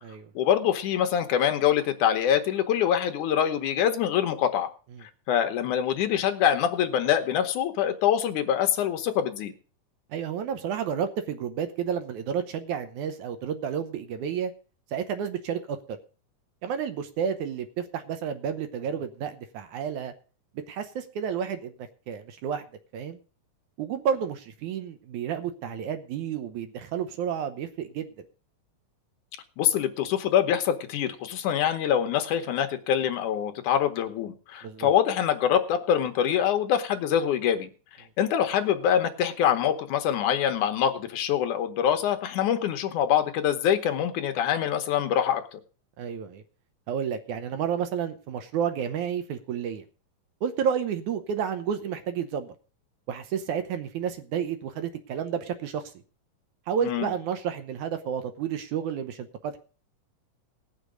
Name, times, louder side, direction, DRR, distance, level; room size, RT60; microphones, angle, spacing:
voice 1, 0.4-4.7 5.0-9.5 29.6-37.7 38.2-45.6 56.8-57.1, left 9 dB, 70° left, 6 dB, 2.5 m, -25 dB
voice 2, 10.1-14.5 14.9-16.0 16.6-20.1 20.7-21.7 22.1-22.6 22.9-23.2 23.8-28.1 34.6-34.9 46.0-46.4 46.9-49.8 50.4-52.5 53.1-55.9 56.7-59.6, right 8 dB, 70° right, 9 dB, 2.2 m, -31 dB
18.5 x 6.6 x 5.1 m, 0.38 s
omnidirectional pair, 3.7 m